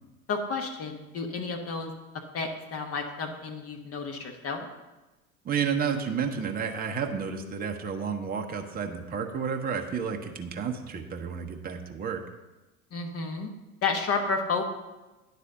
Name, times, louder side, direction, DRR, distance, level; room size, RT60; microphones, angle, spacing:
voice 1, 0.3-1.9 2.3-4.7 12.9-13.5 13.8-14.7, left 4 dB, 35° left, 4 dB, 1.2 m, -31 dB
voice 2, 5.4-12.2, right 6 dB, 20° right, 4 dB, 0.8 m, -31 dB
9.7 x 4.2 x 6.8 m, 1.1 s
figure-of-eight pair, 75°, 43 cm